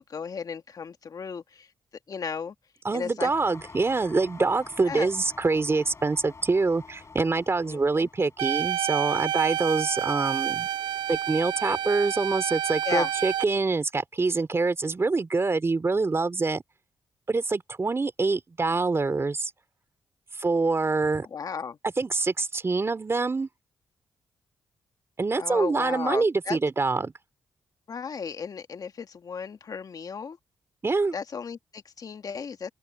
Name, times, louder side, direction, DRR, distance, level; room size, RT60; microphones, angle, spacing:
voice 1, 0.0-1.7 2.1-2.5 2.9-3.3 4.9-5.1 7.7-8.1 12.8-13.1 21.3-21.8 25.4-26.6 27.9-30.4 31.1-32.7, left 6 dB, 55° left, 1.8 m, -34 dB
voice 2, 2.8-10.7 11.1-16.6 17.3-19.5 20.4-21.3 21.8-23.5 25.2-27.1 30.8-31.1, right 3 dB, 35° right, 2.7 m, -25 dB
sound 1, 3.2-8.5, left 4 dB, 40° left, 6.1 m, -47 dB
sound 2, 8.4-13.4, right 11 dB, 80° right, 0.7 m, -29 dB
open air
cardioid pair, 65°, 8 cm